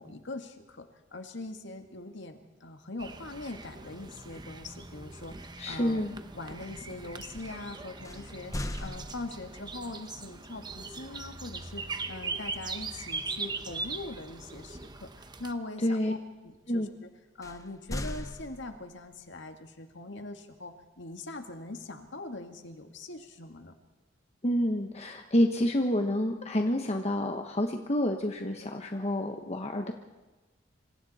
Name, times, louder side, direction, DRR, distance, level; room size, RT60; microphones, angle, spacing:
voice 1, 0.0-6.1 6.3-8.5 8.8-15.1 15.4-16.2 16.4-16.9 17.4-23.7, left 2 dB, 65° left, 5 dB, 2.2 m, -42 dB
sound 1, 3.0-15.5, right 4 dB, 25° right, 1.1 m, -40 dB
voice 2, 5.6-6.1 15.8-16.1 16.7-16.9 24.4-29.9, left 1 dB, 35° left, 4 dB, 1.4 m, -28 dB
sound 2, 8.0-9.7 12.4-12.7 13.2-13.4 17.4-19.1, left 1 dB, 15° left, 1.1 m, -39 dB
26.5 x 26.0 x 4.4 m, 1.2 s
head